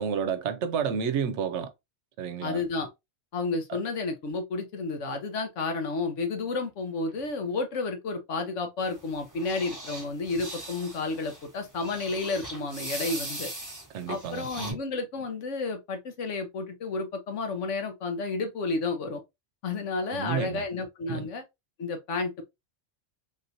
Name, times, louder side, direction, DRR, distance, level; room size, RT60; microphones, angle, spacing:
voice 1, 0.0-1.7 2.2-2.6 3.7-3.8 13.9-14.8 20.1-20.6 21.1-21.3, right 7 dB, 75° right, 0.9 m, -30 dB
voice 2, 2.4-2.9 3.3-13.5 14.1-19.2 19.6-21.4 21.8-22.4, left 3 dB, 85° left, 1.2 m, -31 dB
sound 1, 8.8-14.7, right 1 dB, 15° right, 1.0 m, -40 dB
3.5 x 2.9 x 2.5 m
omnidirectional pair, 1.2 m